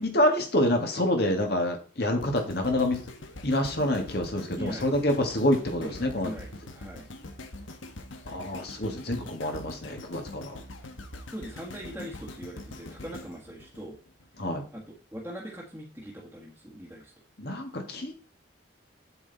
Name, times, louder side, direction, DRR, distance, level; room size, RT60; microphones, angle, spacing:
voice 1, 0.0-3.0 3.4-6.3 8.3-10.6 14.4-14.6 17.4-18.1, left 1 dB, 55° left, 4 dB, 2.0 m, -27 dB
sound 1, 2.2-14.4 14.9-15.0, left 1 dB, 85° left, 1.4 m, -44 dB
voice 2, 5.8-7.1 11.3-14.0 14.7-17.1, equal, 10° right, -6 dB, 1.6 m, -41 dB
9.0 x 8.0 x 4.1 m, 0.38 s
head